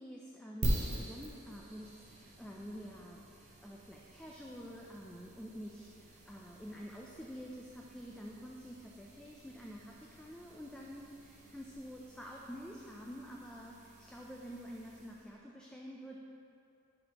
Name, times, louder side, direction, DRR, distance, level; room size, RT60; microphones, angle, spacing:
voice 1, 0.0-16.2, equal, 5° left, -3 dB, 0.3 m, -48 dB
sound 1, 0.6-15.4, right 1 dB, 35° right, 0.8 m, -44 dB
9.8 x 4.2 x 2.9 m, 2.7 s
head